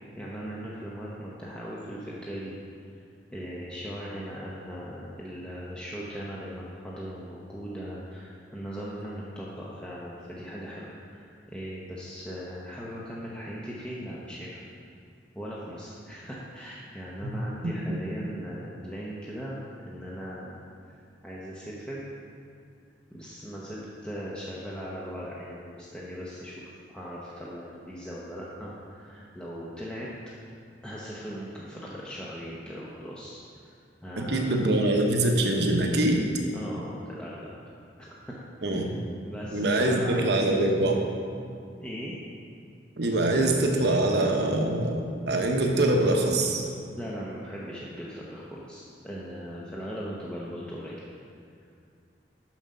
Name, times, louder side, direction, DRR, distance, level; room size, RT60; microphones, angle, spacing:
voice 1, 0.1-2.5 3.3-14.6 15.3-19.6 19.9-20.6 21.2-22.1 23.1-30.1 30.8-33.7 34.0-34.6 36.5-38.4 38.7-38.8 39.2-40.2 41.8-42.2 47.0-51.0, equal, 5° left, -6 dB, 0.8 m, -39 dB
voice 2, 34.2-36.2 38.6-38.9 39.5-41.0 43.0-46.6, right 1 dB, 60° right, 2 dB, 1.0 m, -24 dB
7.3 x 6.4 x 5.5 m, 2.4 s
head